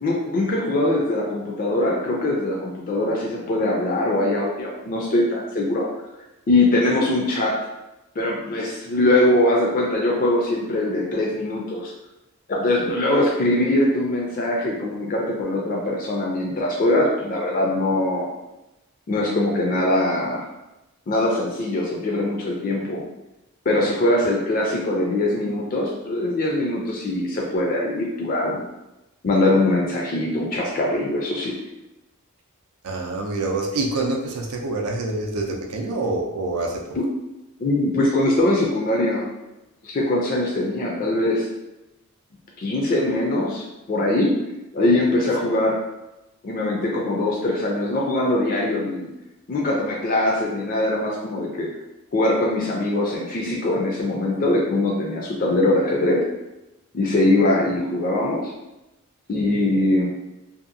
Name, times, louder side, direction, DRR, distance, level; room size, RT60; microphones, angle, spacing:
voice 1, 0.0-5.9 6.5-7.6 8.2-11.9 12.5-18.3 19.1-20.5 21.1-23.0 23.7-28.6 29.2-31.5 37.6-39.3 39.8-41.5 42.6-44.3 44.7-45.8 46.4-49.1 49.5-51.7 52.1-56.2 56.9-58.5 59.3-60.1, left 1 dB, 40° left, -2 dB, 0.4 m, -22 dB
voice 2, 32.8-37.0, right 2 dB, 80° right, 2 dB, 0.5 m, -26 dB
2.7 x 2.4 x 2.5 m, 0.96 s
head